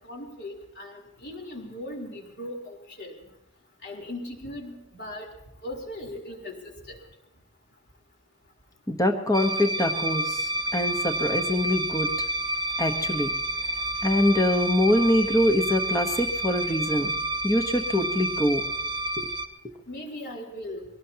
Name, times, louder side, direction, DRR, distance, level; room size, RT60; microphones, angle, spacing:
voice 1, 0.0-3.2 3.8-5.3 5.6-6.6 6.9-7.0 19.9-20.9, left 1 dB, 55° left, -1 dB, 3.7 m, -38 dB
voice 2, 8.9-12.1 12.8-13.3 14.0-17.2 17.4-18.6 19.2-19.3, left 1 dB, 15° left, 5 dB, 1.1 m, -24 dB
sound 1, 9.3-19.5, right 1 dB, 20° right, 0.9 m, -29 dB
23.5 x 18.0 x 2.9 m, 0.86 s
head